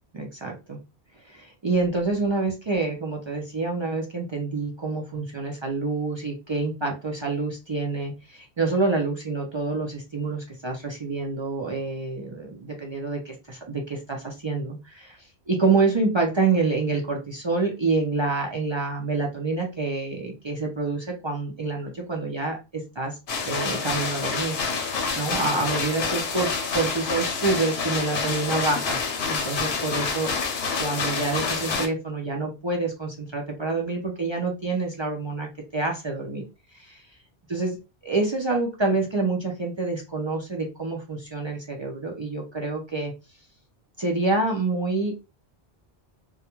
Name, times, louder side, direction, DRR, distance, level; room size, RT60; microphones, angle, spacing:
voice 1, 0.1-0.8 1.3-23.2 23.4-29.0 29.3-30.3 30.8-36.4 36.7-37.0 37.5-37.8 38.0-43.1 44.0-45.1, right 3 dB, 45° right, -1 dB, 0.4 m, -27 dB
sound 1, 23.3-31.9, left 5 dB, 85° left, 0.9 m, -27 dB
2.3 x 2.1 x 2.9 m, 0.28 s
omnidirectional pair, 1.0 m